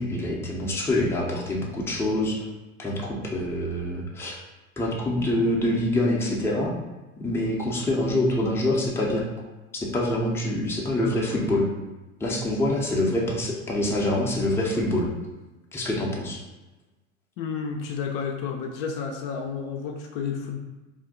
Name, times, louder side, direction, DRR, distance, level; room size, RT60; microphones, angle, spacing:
voice 1, 0.0-2.4 2.8-4.4 4.8-6.7 7.2-9.3 9.9-11.7 12.2-15.1 15.7-16.4, left 1 dB, 5° left, -3 dB, 0.5 m, -25 dB
voice 2, 17.4-20.6, left 6 dB, 55° left, 2 dB, 0.5 m, -31 dB
2.5 x 2.2 x 3.6 m, 1.1 s
hypercardioid pair, 85°, 40 cm